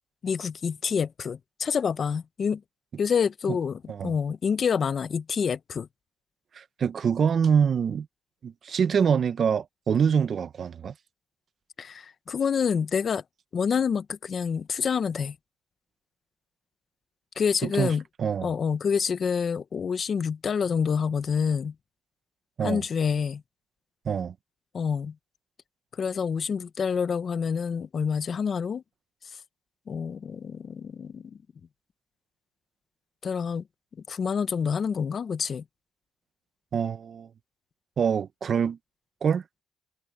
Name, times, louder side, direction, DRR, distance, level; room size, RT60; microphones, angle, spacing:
voice 1, 0.2-2.6 3.0-5.9 11.8-13.2 13.5-15.3 17.4-18.0 18.4-21.7 22.6-23.4 24.7-25.1 26.0-28.8 29.9-31.4 33.2-33.6 34.1-35.6, left 6 dB, 50° left, 0.9 m, -27 dB
voice 2, 6.5-8.1 8.4-10.9 17.6-18.5 22.6-22.8 24.0-24.3 36.7-37.3 38.0-38.8 39.2-39.4, right 7 dB, 55° right, 1.2 m, -25 dB
cardioid pair, 80°, 0 cm